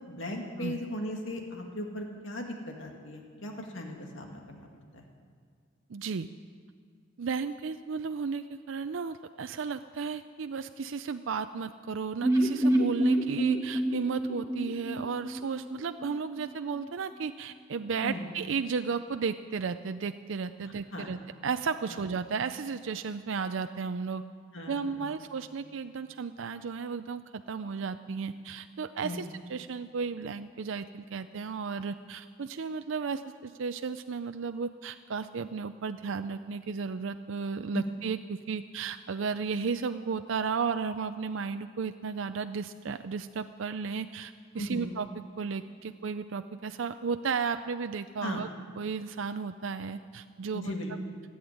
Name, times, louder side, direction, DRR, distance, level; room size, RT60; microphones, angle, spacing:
voice 1, 0.1-4.7 4.9-5.0 18.0-18.2 20.9-21.1 24.5-25.1 29.0-29.3 44.6-44.9 48.2-48.4 50.5-50.9, left 1 dB, 70° left, 2 dB, 2.1 m, -37 dB
voice 2, 5.9-6.3 7.2-24.2 24.7-45.1 45.4-48.5 48.8-50.7, right 5 dB, 75° right, 9 dB, 0.5 m, -34 dB
sound 1, 12.2-16.1 16.4-16.5 16.7-16.8, right 1 dB, 15° right, 1.8 m, -27 dB
16.5 x 8.7 x 9.5 m, 2.1 s
head